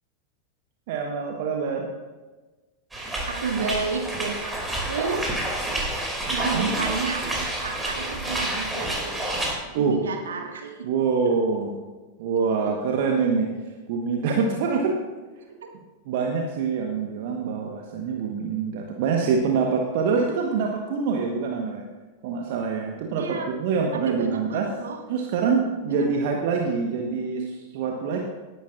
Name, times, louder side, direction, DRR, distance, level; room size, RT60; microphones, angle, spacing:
voice 1, 0.9-1.9 6.3-6.8 9.7-10.0 10.8-11.7 12.2-13.5 13.9-15.0 16.1-21.8 22.2-24.7 25.1-28.2, right 5 dB, 50° right, 1 dB, 1.3 m, -25 dB
sound 1, 2.9-9.6, right 1 dB, 10° right, 2.7 m, -29 dB
voice 2, 3.3-4.5 4.9-5.9 6.3-9.1 9.8-10.8 11.2-11.3 23.2-23.5 24.1-25.0 25.9-26.1 27.0-27.2, right 5 dB, 65° right, 2 dB, 1.7 m, -31 dB
18.0 x 9.9 x 2.6 m, 1.2 s
figure-of-eight pair, 90°, 0 cm